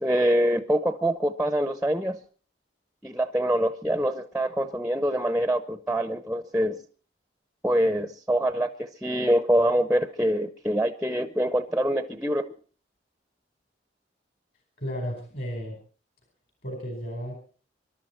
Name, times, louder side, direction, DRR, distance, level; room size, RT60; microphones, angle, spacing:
voice 1, 0.0-2.2 3.0-6.8 7.6-12.4, equal, 5° right, 9 dB, 0.8 m, -25 dB
voice 2, 14.8-15.8 16.6-17.4, equal, 50° left, 3 dB, 4.5 m, -33 dB
25.0 x 12.0 x 4.4 m, 0.41 s
head